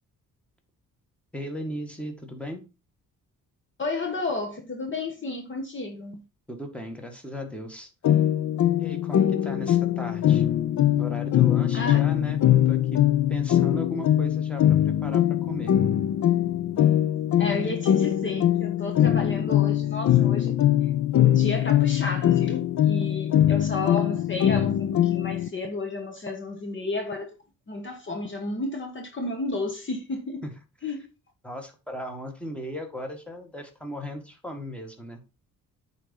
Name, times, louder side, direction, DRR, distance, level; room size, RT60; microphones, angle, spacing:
voice 1, 1.3-2.6 6.5-7.9 8.8-10.4 11.0-13.0 13.3-15.7 30.4-30.5 31.4-35.2, equal, 5° left, 1.8 m, -36 dB
voice 2, 3.8-6.2 11.7-12.0 17.4-20.6 21.1-27.3 27.7-30.4 30.8-31.0, left 2 dB, 35° left, 1.3 m, -32 dB
sound 1, 8.0-25.5, left 11 dB, 60° left, 0.7 m, -22 dB
8.8 x 4.2 x 5.3 m
cardioid pair, 115°, 33 cm